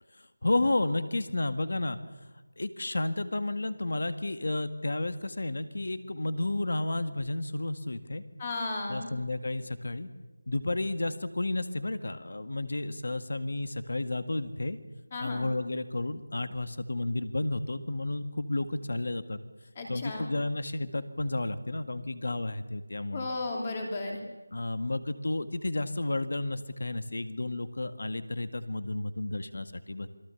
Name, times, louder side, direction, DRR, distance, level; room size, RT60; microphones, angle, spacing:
voice 1, 0.1-2.0 2.6-8.2 8.9-10.1 10.5-14.8 15.2-19.4 19.9-23.3 24.5-30.1, left 2 dB, 55° left, 11 dB, 1.8 m, -32 dB
voice 2, 8.4-9.1 15.1-15.4 19.7-20.3 23.1-24.2, left 2 dB, 20° left, 2 dB, 3.0 m, -34 dB
27.5 x 22.5 x 7.1 m, 1.2 s
figure-of-eight pair, 180°, 0 cm